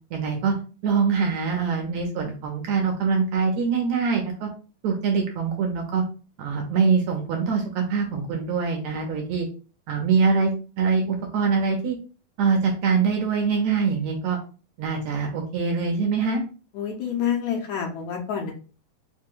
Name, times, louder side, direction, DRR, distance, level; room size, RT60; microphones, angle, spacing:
voice 1, 0.1-0.5 0.8-4.5 4.8-6.0 6.4-9.5 9.9-10.5 10.8-12.0 12.4-14.4 14.8-16.4, right 5 dB, 70° right, 2 dB, 1.8 m, -23 dB
voice 2, 16.7-18.5, left 8 dB, 75° left, 0 dB, 2.0 m, -27 dB
5.0 x 2.2 x 3.6 m, 0.36 s
omnidirectional pair, 3.7 m